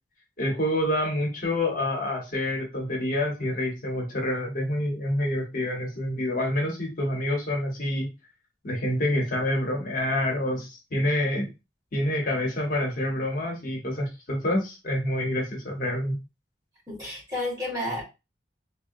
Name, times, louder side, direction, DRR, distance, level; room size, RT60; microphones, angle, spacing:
voice 1, 0.4-8.1 8.6-11.5 11.9-16.2, left 1 dB, 50° left, 0 dB, 0.9 m, -27 dB
voice 2, 16.9-18.0, left 1 dB, 25° right, -5 dB, 1.6 m, -31 dB
3.5 x 2.1 x 2.6 m, 0.27 s
head